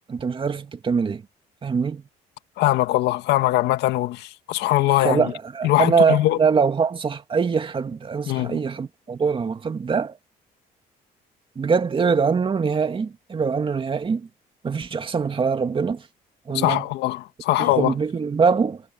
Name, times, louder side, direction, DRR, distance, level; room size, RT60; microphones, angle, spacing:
voice 1, 0.1-1.2 1.6-2.0 5.0-10.2 11.6-14.3 14.6-16.0 16.5-16.8 17.6-18.8, right 5 dB, 30° right, 2.5 m, -23 dB
voice 2, 2.6-5.2 5.6-6.4 8.3-8.6 16.5-17.9, left 16 dB, 80° left, 1.8 m, -21 dB
cardioid pair, 110°, 17 cm